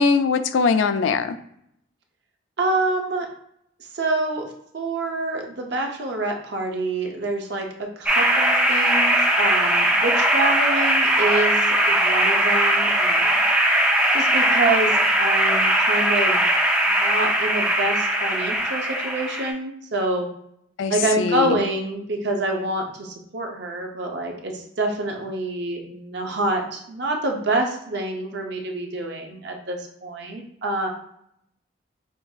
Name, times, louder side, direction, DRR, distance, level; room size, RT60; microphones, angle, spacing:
voice 1, 0.0-1.4 20.8-21.6, left 5 dB, 80° left, 11 dB, 0.3 m, -21 dB
voice 2, 2.6-3.3 3.9-4.5 4.7-13.4 14.1-16.4 16.9-20.3 20.9-30.9, right 2 dB, 60° right, 2 dB, 0.6 m, -27 dB
sound 1, 8.1-19.5, right 1 dB, 5° right, 0.4 m, -20 dB
5.1 x 2.5 x 2.3 m, 0.74 s
head